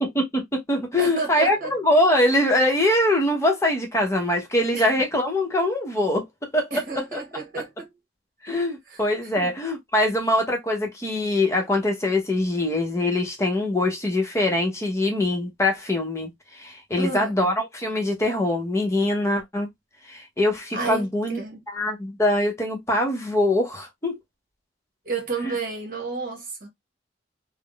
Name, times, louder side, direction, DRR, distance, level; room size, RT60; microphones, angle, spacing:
voice 1, 0.0-6.2 6.5-7.2 8.4-19.7 20.1-21.4 21.7-24.2 25.4-25.5, left 1 dB, 15° left, 0.8 m, -23 dB
voice 2, 1.0-1.7 4.7-4.9 6.7-7.9 8.9-9.0 9.4-9.5 17.0-17.3 20.7-21.1 21.4-21.6 25.0-26.7, right 4 dB, 45° right, 1.1 m, -30 dB
3.4 x 2.1 x 2.3 m
head